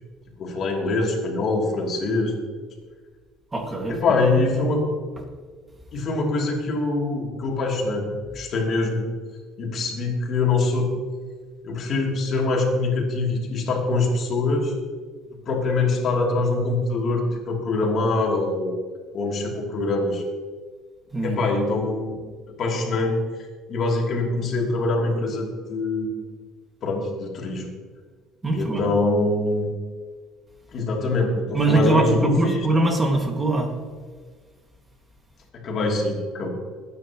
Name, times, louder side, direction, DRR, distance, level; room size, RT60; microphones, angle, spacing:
voice 1, 0.4-2.3 3.9-4.8 5.9-8.1 8.3-9.0 9.6-10.9 11.6-14.7 15.4-18.7 19.1-20.2 21.2-22.2 22.5-23.2 23.7-26.1 26.8-27.7 28.5-29.7 30.7-32.6 35.5-36.5, left 3 dB, 45° left, -1 dB, 2.9 m, -24 dB
voice 2, 3.5-4.2 21.1-21.4 28.4-28.9 31.5-33.7, right 2 dB, 15° right, 2 dB, 2.0 m, -22 dB
21.5 x 9.6 x 3.0 m, 1.5 s
cardioid pair, 130°, 0 cm